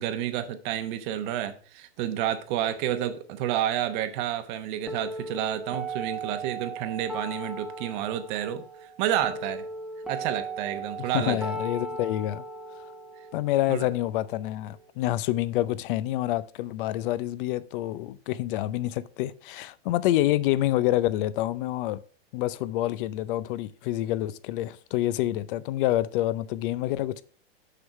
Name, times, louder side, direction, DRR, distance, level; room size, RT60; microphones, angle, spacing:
voice 1, 0.0-8.6 9.0-9.6 10.1-11.4 13.7-13.8, right 11 dB, 50° right, 0.9 m, -30 dB
sound 1, 4.9-14.9, right 3 dB, ahead, 0.8 m, -38 dB
voice 2, 11.0-12.4 13.3-22.0 22.3-27.2, left 14 dB, 55° left, 0.6 m, -27 dB
6.7 x 5.6 x 4.5 m
hypercardioid pair, 125°, 32 cm